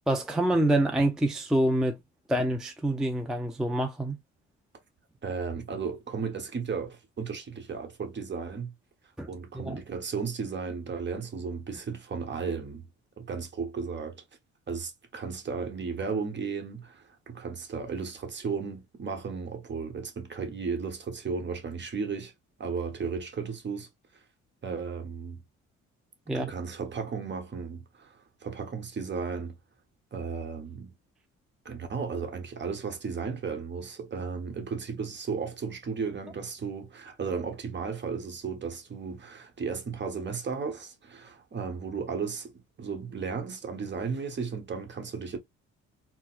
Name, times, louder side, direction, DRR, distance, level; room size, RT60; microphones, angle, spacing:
voice 1, 0.1-2.0 2.3-4.2 9.2-9.3 9.5-9.8 26.3-26.5, right 1 dB, ahead, 0.4 m, -26 dB
voice 2, 5.2-8.7 9.3-12.8 13.2-14.2 14.7-22.3 22.6-23.9 24.6-25.4 26.3-29.6 30.1-30.9 31.6-45.4, right 5 dB, 35° right, 1.0 m, -34 dB
4.1 x 2.1 x 2.4 m
cardioid pair, 90°, 30 cm